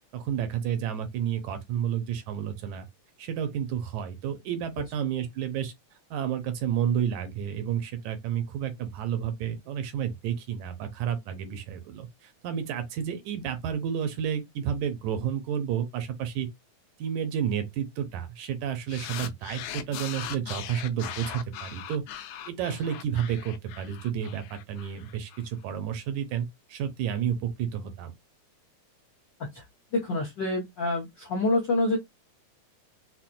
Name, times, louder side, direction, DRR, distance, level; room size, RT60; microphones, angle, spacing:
voice 1, 0.1-2.9 3.2-5.7 6.1-16.5 17.0-28.1, right 9 dB, 75° right, 2.0 m, -31 dB
sound 1, 18.9-25.4, left 10 dB, 85° left, 2.1 m, -40 dB
voice 2, 29.9-32.0, left 2 dB, 70° left, 1.1 m, -27 dB
5.8 x 2.1 x 2.6 m
omnidirectional pair, 3.5 m